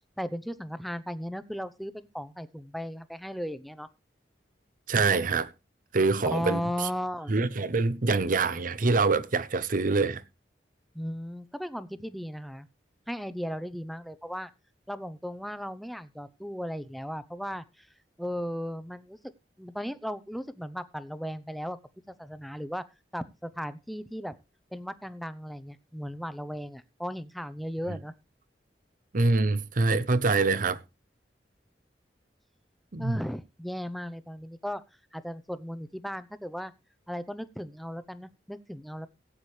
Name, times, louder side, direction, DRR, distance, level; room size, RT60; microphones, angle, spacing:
voice 1, 0.2-3.9 6.2-7.3 10.9-12.7 13.1-14.5 14.9-17.9 18.2-19.2 19.6-21.8 22.1-22.8 23.1-24.3 24.7-28.1 33.0-34.8 35.1-36.7 37.1-39.1, equal, ahead, 0.7 m, -36 dB
voice 2, 4.9-5.5 5.9-6.9 7.3-10.2 27.9-28.0 29.1-30.8 32.9-33.2, right 3 dB, 50° right, 0.7 m, -25 dB
16.5 x 8.8 x 3.2 m
head